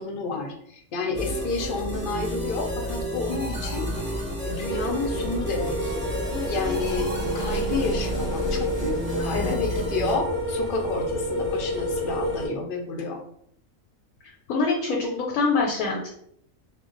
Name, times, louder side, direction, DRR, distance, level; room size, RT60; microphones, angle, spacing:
voice 1, 0.0-3.9 4.4-5.9 6.4-13.2, left 3 dB, 65° left, 1 dB, 0.5 m, -30 dB
sound 1, 1.1-10.1, equal, 10° right, 0.9 m, -31 dB
sound 2, 4.6-12.5, equal, 30° left, 0.7 m, -29 dB
voice 2, 14.2-16.1, left 4 dB, 90° left, -1 dB, 1.0 m, -25 dB
2.3 x 2.1 x 3.7 m, 0.72 s
omnidirectional pair, 1.4 m